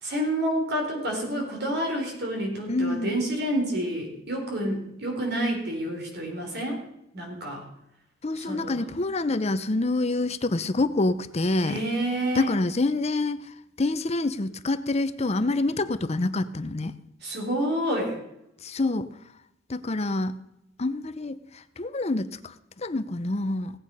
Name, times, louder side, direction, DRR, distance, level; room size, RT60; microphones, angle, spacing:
voice 1, 0.0-6.8 7.1-7.6 8.4-8.8 11.6-12.5 17.2-18.2, right 1 dB, 60° right, 1 dB, 4.0 m, -29 dB
voice 2, 2.7-3.1 8.2-11.8 12.4-13.4 13.8-16.9 18.6-19.1 19.7-20.3 20.8-21.3 21.8-22.3 22.8-23.7, left 2 dB, 35° left, 12 dB, 0.7 m, -26 dB
16.5 x 8.7 x 5.5 m, 0.84 s
head